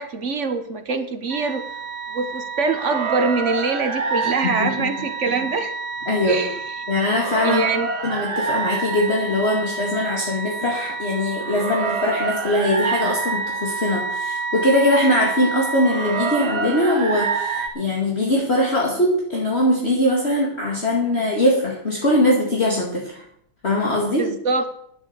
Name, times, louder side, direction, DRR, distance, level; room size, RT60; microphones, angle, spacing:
voice 1, 0.0-1.6 2.1-5.7 6.3-6.6 7.4-7.9 24.2-24.6, right 4 dB, 45° right, 9 dB, 1.3 m, -24 dB
sound 1, 1.3-17.7, right 4 dB, 85° right, 2.4 m, -27 dB
voice 2, 4.4-4.9 6.1-6.4 6.9-7.6 8.0-23.2 23.6-24.3, left 1 dB, 30° left, -2 dB, 2.3 m, -21 dB
11.0 x 8.1 x 8.0 m, 0.67 s
omnidirectional pair, 2.2 m